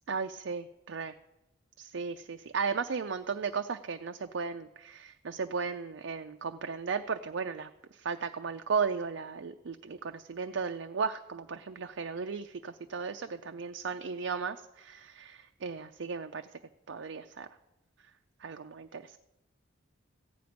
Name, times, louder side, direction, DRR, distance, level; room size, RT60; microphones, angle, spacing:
voice 1, 0.1-1.1 1.8-7.7 8.0-16.4 16.9-17.5 18.4-19.0, right 5 dB, 65° right, 6 dB, 0.5 m, -35 dB
15.0 x 5.2 x 9.2 m, 0.94 s
head